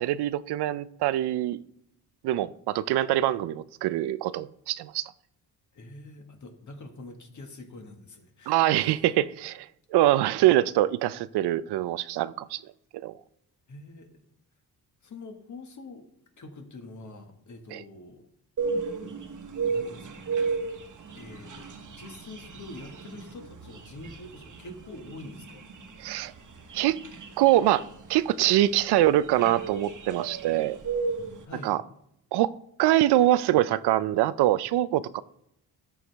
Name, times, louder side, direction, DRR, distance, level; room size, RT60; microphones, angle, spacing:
voice 1, 0.0-1.6 2.2-5.1 8.5-12.6 12.9-13.1 17.7-17.8 26.0-26.3 26.7-27.0 27.4-27.8 28.1-30.8 31.6-31.8 32.3-32.5 32.8-35.2, right 14 dB, 80° right, 0.5 m, -24 dB
voice 2, 5.7-9.0 13.7-14.1 15.0-16.0 16.4-18.3 19.6-20.3 21.1-25.6 31.4-31.7, left 2 dB, 45° left, 1.7 m, -45 dB
sound 1, 18.6-31.4, right 5 dB, 50° right, 1.3 m, -34 dB
13.0 x 4.7 x 3.4 m
cardioid pair, 80°, 39 cm